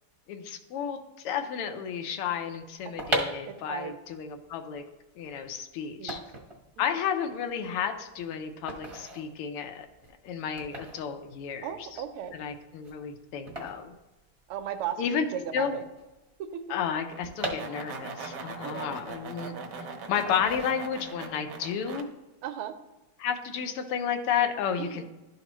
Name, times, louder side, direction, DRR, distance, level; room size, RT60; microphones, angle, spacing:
voice 1, 0.3-4.8 5.1-6.2 6.8-9.9 10.2-12.0 12.3-13.9 15.0-15.8 16.7-19.5 20.1-22.1 23.2-25.0, left 7 dB, 85° left, 6 dB, 1.7 m, -32 dB
sound 1, 2.7-14.9 15.1-15.2 15.4-18.3 18.7-19.7 20.3-21.3 21.6-21.9, right 1 dB, 25° right, 0.7 m, -38 dB
voice 2, 3.5-3.9 6.0-6.1 11.6-12.3 14.5-15.0 15.3-15.8 16.5-16.6 18.6-18.9 22.4-22.7 24.8-25.0, right 10 dB, 90° right, 7 dB, 1.6 m, -35 dB
sound 2, 17.1-22.0, right 4 dB, 65° right, 1.2 m, -40 dB
12.0 x 4.1 x 3.0 m, 1.1 s
omnidirectional pair, 2.4 m